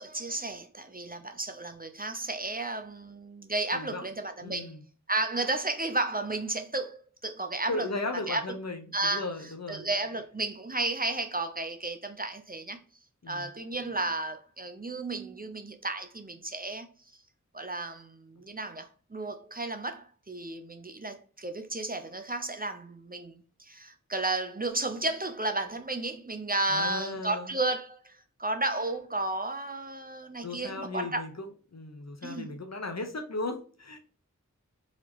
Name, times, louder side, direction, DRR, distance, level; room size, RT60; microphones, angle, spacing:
voice 1, 0.0-4.7 5.1-7.9 8.3-8.4 8.9-9.3 9.7-12.8 13.3-16.9 17.5-28.1 28.4-31.2 32.2-32.5, right 2 dB, 30° right, 0.5 m, -33 dB
voice 2, 3.7-4.0 4.4-4.8 7.7-9.9 13.2-13.5 26.7-27.5 30.4-34.0, left 2 dB, 55° left, 0.8 m, -36 dB
4.1 x 2.9 x 2.9 m
wide cardioid pair, 40°, 31 cm